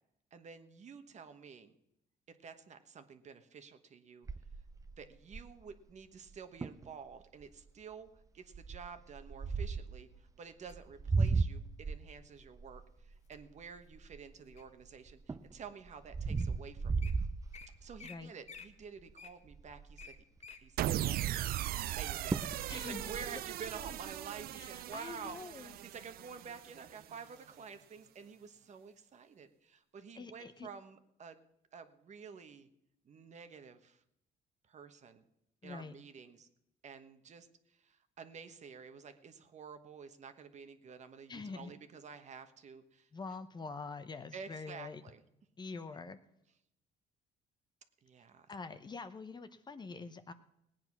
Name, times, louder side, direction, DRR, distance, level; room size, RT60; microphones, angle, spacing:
voice 1, 0.3-1.7 2.3-4.3 5.0-8.1 8.3-17.1 17.8-20.1 20.6-31.4 31.7-32.7 33.0-34.0 34.7-35.2 35.6-36.5 36.8-43.1 44.3-45.2 48.0-48.5, right 6 dB, 45° right, 9 dB, 1.3 m, -50 dB
sound 1, 4.3-5.7 6.3-6.4 6.6-6.9 7.4-7.7 8.5-10.0 10.7-14.6 15.1-18.1 18.6-18.8 19.1-19.2 19.5-20.2 21.9-22.0 22.3-22.6 23.0-23.9, right 4 dB, 20° right, 0.7 m, -36 dB
Wild animals, 10.7-11.4 12.1-12.4 12.9-13.4 13.9-14.8 15.4-15.5 16.1-16.2 16.4-16.5 16.8-17.1 17.5-17.7 18.0-18.2 18.4-20.6 21.1-21.2, left 6 dB, 40° left, 1.5 m, -52 dB
sound 2, 20.8-27.1, right 13 dB, 65° right, 0.5 m, -38 dB
voice 2, 22.7-23.0 24.5-25.8 30.1-30.7 35.6-35.9 41.3-41.7 43.1-45.0 45.6-46.2 48.5-50.3, left 4 dB, 25° left, 10 dB, 0.9 m, -45 dB
18.0 x 9.1 x 6.0 m, 0.81 s
cardioid pair, 110°, 17 cm